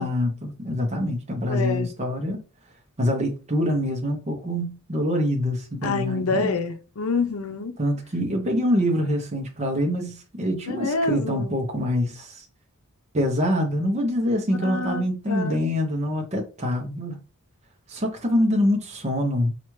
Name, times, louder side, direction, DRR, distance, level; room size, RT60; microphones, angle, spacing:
voice 1, 0.0-2.4 3.0-6.5 7.8-12.5 13.1-17.2 17.9-19.5, equal, 30° right, 0.7 m, -25 dB
voice 2, 1.5-1.9 5.8-7.8 10.7-11.5 14.6-15.6, left 3 dB, 75° left, 0.6 m, -27 dB
4.5 x 2.4 x 3.1 m
head